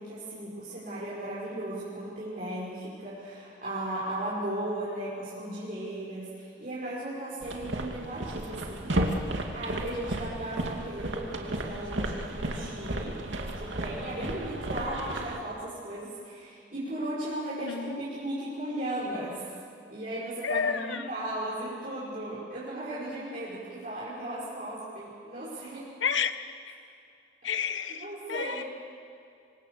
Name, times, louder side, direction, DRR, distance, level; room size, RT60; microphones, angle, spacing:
voice 1, 0.0-8.9 9.5-13.2 13.5-19.5 19.9-25.9 27.6-28.6, right 1 dB, 45° right, -9 dB, 5.6 m, -36 dB
sound 1, 7.4-15.4, right 1 dB, 80° right, 2.5 m, -33 dB
voice 2, 17.5-18.0 20.4-21.1 26.0-26.7 27.4-28.6, left 6 dB, 85° left, 11 dB, 1.2 m, -31 dB
25.5 x 25.0 x 6.8 m, 2.5 s
head